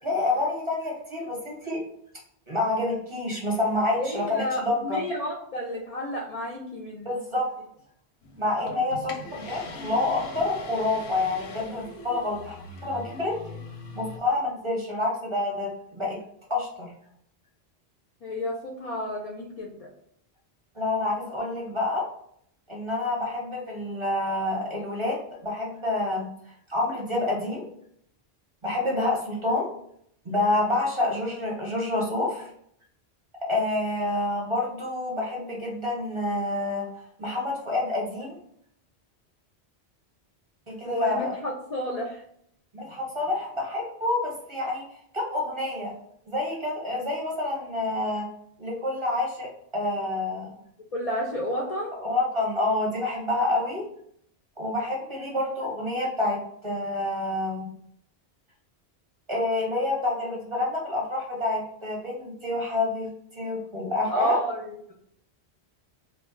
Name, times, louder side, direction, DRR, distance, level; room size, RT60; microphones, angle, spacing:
voice 1, 0.0-1.8 2.5-5.0 7.0-7.5 8.4-13.3 13.9-16.2 16.5-16.9 20.7-22.0 22.7-25.2 25.4-26.3 26.7-27.7 28.6-29.7 30.2-32.5 33.5-36.8 37.2-38.4 40.7-41.3 42.7-44.8 45.1-45.9 46.3-48.3 48.6-50.5 52.0-53.8 54.6-57.7 59.3-64.4, left 2 dB, 30° right, -4 dB, 0.7 m, -28 dB
voice 2, 4.0-7.1 8.6-8.8 18.2-19.9 40.8-42.2 50.9-51.9 64.1-64.9, equal, 60° left, -1 dB, 0.4 m, -31 dB
sound 1, 8.2-14.2, left 2 dB, 85° left, 0.9 m, -41 dB
2.2 x 2.2 x 3.7 m, 0.69 s
omnidirectional pair, 1.1 m